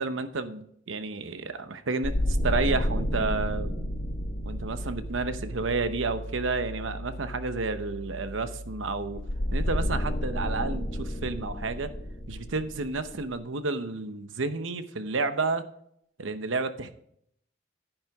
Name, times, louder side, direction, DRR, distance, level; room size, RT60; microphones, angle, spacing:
voice 1, 0.0-3.7 4.4-9.2 9.5-11.9 12.3-15.6 16.2-16.9, right 3 dB, 85° right, 11 dB, 0.9 m, -31 dB
sound 1, 2.0-6.4 9.2-13.3, left 1 dB, 65° left, 1.6 m, -31 dB
Piano, 2.3-12.6, right 1 dB, 65° right, 1.7 m, -40 dB
10.5 x 8.9 x 3.6 m, 0.70 s
head